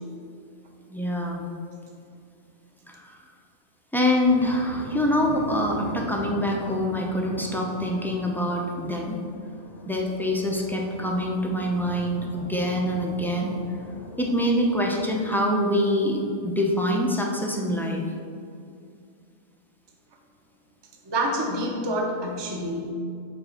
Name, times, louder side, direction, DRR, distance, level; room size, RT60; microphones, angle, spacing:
voice 1, 0.9-1.5 2.9-3.2 3.9-9.2 9.9-13.5 14.2-18.1, left 1 dB, 5° left, -1 dB, 0.3 m, -25 dB
sound 1, 4.2-15.4, equal, 55° left, 1.0 m, -40 dB
voice 2, 21.0-22.9, right 1 dB, 25° right, 1 dB, 0.7 m, -27 dB
5.7 x 4.9 x 6.4 m, 2.3 s
omnidirectional pair, 1.4 m